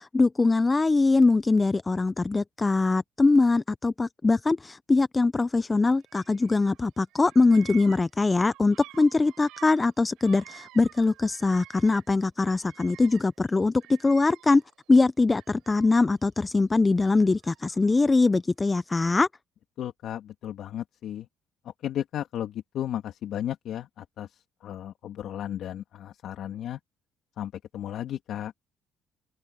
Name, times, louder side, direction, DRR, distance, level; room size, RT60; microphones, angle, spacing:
voice 1, 0.0-14.6 14.9-19.3, left 3 dB, 20° left, 0.4 m, -22 dB
Bird vocalization bird call bird song, 6.0-6.8 7.1-12.2 12.4-14.8 15.3-16.3 17.0-18.1, right 16 dB, 80° right, 5.9 m, -51 dB
voice 2, 19.8-21.3 21.6-26.8 27.4-28.5, left 11 dB, 65° left, 2.6 m, -34 dB
open air
cardioid pair, 100°, 0 cm